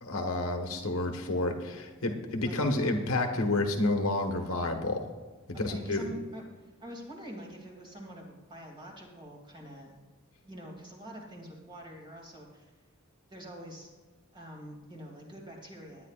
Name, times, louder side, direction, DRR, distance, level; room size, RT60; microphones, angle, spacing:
voice 1, 0.0-5.1 5.6-6.1, left 2 dB, 80° left, 4 dB, 1.4 m, -30 dB
voice 2, 5.5-10.0 10.4-12.7 13.3-13.9 14.3-16.1, equal, 20° right, 0 dB, 2.6 m, -45 dB
20.0 x 9.7 x 2.5 m, 1.3 s
head